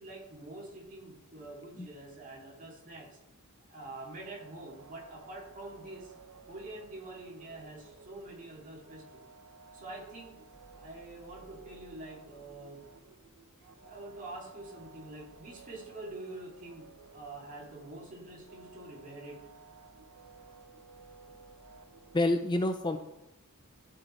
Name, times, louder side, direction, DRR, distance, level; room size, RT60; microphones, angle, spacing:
voice 1, 0.0-3.2 3.7-6.1 6.5-9.3 9.7-10.4 10.8-12.8 13.8-19.5, right 2 dB, 35° right, -3 dB, 2.4 m, -46 dB
sound 1, 4.0-22.3, right 4 dB, 70° right, 0.8 m, -55 dB
voice 2, 22.1-23.0, left 2 dB, 20° left, 7 dB, 0.4 m, -28 dB
12.5 x 4.8 x 4.3 m, 0.88 s
head